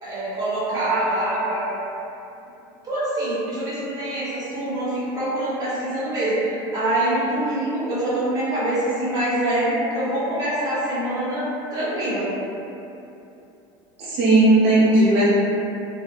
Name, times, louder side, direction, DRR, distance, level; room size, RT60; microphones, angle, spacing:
voice 1, 0.0-1.7 2.8-12.3, right 1 dB, 30° right, -10 dB, 0.9 m, -25 dB
voice 2, 14.0-15.3, right 2 dB, 75° right, -8 dB, 0.8 m, -16 dB
2.2 x 2.1 x 2.8 m, 2.8 s
supercardioid pair, 120°, 13 cm